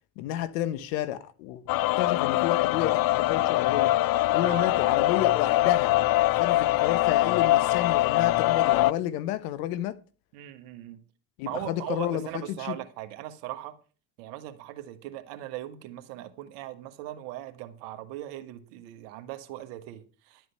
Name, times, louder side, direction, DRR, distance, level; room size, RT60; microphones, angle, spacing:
voice 1, 0.2-1.6 2.0-3.9 4.3-5.9 6.3-10.0 11.4-12.7, left 12 dB, 80° left, 1.1 m, -31 dB
sound 1, 1.7-8.9, left 16 dB, 50° left, 0.5 m, -23 dB
voice 2, 4.4-4.7 10.3-11.0 11.4-13.7 14.2-20.5, right 14 dB, 80° right, 1.6 m, -39 dB
11.5 x 7.8 x 5.7 m
hypercardioid pair, 65°, 46 cm